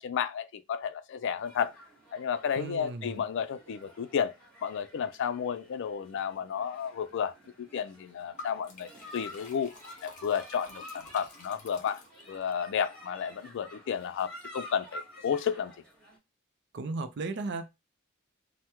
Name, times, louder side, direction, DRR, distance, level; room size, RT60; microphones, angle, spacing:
voice 1, 0.0-1.7 2.1-4.3 4.6-9.7 10.0-12.0 12.3-15.7, left 7 dB, 60° left, 0.3 m, -32 dB
sound 1, 1.4-16.2, left 1 dB, 5° left, 1.5 m, -50 dB
voice 2, 2.6-3.2 16.7-17.7, right 3 dB, 55° right, 0.5 m, -35 dB
Liquid, 8.4-12.6, left 3 dB, 40° left, 0.7 m, -50 dB
3.4 x 2.1 x 2.9 m
head